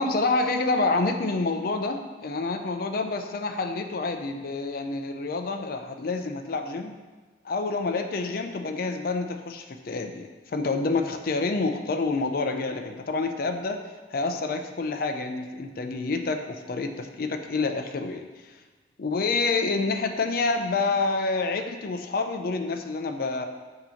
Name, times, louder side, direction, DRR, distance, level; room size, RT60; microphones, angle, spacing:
voice 1, 0.0-6.9 7.4-13.8 14.1-18.3 19.0-23.5, left 3 dB, 55° left, 6 dB, 0.5 m, -28 dB
6.4 x 2.9 x 5.7 m, 1.3 s
head